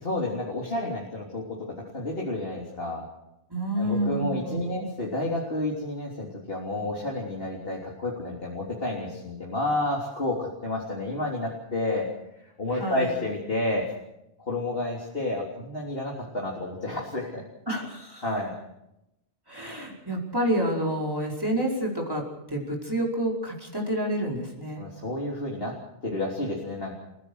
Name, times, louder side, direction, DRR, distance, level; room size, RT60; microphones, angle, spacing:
voice 1, 0.0-3.1 3.8-12.1 12.6-13.9 14.4-17.4 18.2-18.5 24.8-25.7 26.0-27.0, left 2 dB, 60° left, -3 dB, 3.8 m, -30 dB
voice 2, 3.5-4.9 12.7-13.1 17.7-18.2 19.5-24.8, right 1 dB, 20° right, -1 dB, 5.2 m, -29 dB
28.5 x 17.0 x 6.5 m, 0.87 s
omnidirectional pair, 1.1 m